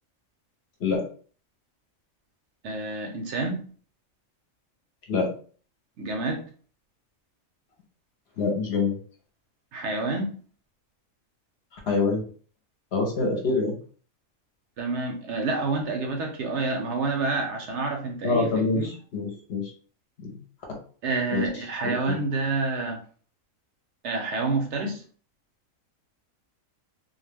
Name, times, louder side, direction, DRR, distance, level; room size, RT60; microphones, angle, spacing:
voice 1, 2.6-3.7 6.0-6.5 9.7-10.4 14.8-18.9 21.0-23.0 24.0-25.0, right 3 dB, 70° right, 3 dB, 0.8 m, -28 dB
voice 2, 8.4-8.9 11.7-12.2 12.9-13.8 18.2-19.7 20.2-20.3 21.3-21.4 21.8-22.2, left 4 dB, 55° left, 1 dB, 0.9 m, -25 dB
2.3 x 2.2 x 3.3 m, 0.43 s
omnidirectional pair, 1.4 m